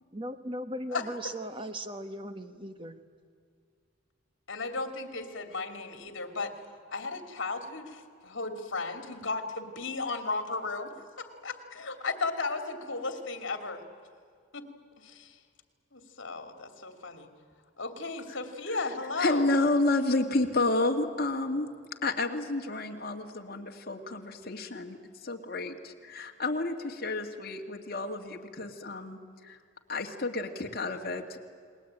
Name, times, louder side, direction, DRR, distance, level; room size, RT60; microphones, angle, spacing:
voice 1, 0.1-3.0, equal, 25° right, 8 dB, 1.3 m, -38 dB
voice 2, 4.5-6.5 6.9-10.9 11.2-13.8 14.5-14.7 15.0-15.4 15.9-17.3 17.8-19.5, left 3 dB, 70° left, 6 dB, 2.8 m, -35 dB
voice 3, 19.2-21.7 22.0-29.6 29.9-31.4, left 2 dB, 50° left, 2 dB, 2.3 m, -30 dB
30.0 x 21.0 x 9.0 m, 2.2 s
head